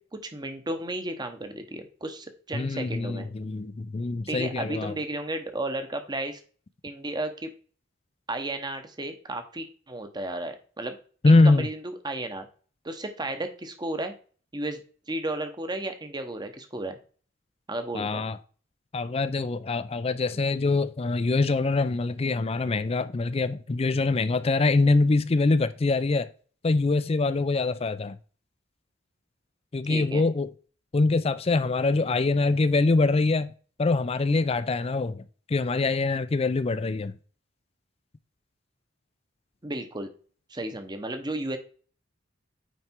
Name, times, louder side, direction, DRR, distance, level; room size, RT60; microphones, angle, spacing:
voice 1, 0.1-3.3 4.3-6.4 6.8-7.5 8.3-11.0 11.2-12.5 12.8-14.1 14.5-14.8 15.1-17.0 17.7-18.2 29.9-30.2 39.6-40.1 40.5-41.6, right 2 dB, 20° right, 0.9 m, -33 dB
voice 2, 2.5-4.9 11.2-11.7 17.9-18.4 18.9-26.3 26.6-28.2 29.7-30.5 30.9-33.5 33.8-37.1, left 3 dB, 30° left, 0.4 m, -24 dB
9.3 x 3.3 x 4.5 m
head